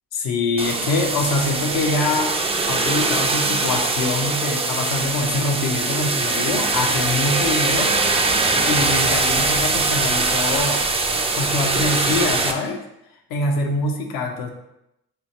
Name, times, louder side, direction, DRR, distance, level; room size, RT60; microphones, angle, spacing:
voice 1, 0.1-2.3 2.7-8.0 8.5-10.8 11.4-12.8 13.3-14.5, left 2 dB, 75° left, 3 dB, 0.7 m, -24 dB
sound 1, 0.6-12.5, right 3 dB, 15° right, 0.4 m, -22 dB
3.4 x 2.4 x 4.1 m, 0.85 s
supercardioid pair, 60°, 36 cm